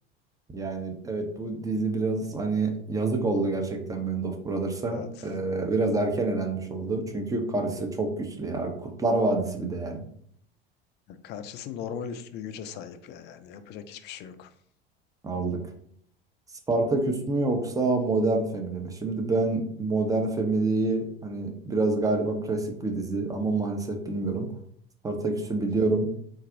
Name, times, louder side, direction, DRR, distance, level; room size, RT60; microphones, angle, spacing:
voice 1, 0.5-10.0 15.2-15.6 16.7-24.5 25.0-26.1, right 3 dB, 10° right, 4 dB, 0.6 m, -27 dB
voice 2, 11.2-14.5 25.8-25.9, left 8 dB, 35° left, 10 dB, 0.4 m, -38 dB
3.9 x 2.5 x 2.6 m, 0.64 s
figure-of-eight pair, 75°, 31 cm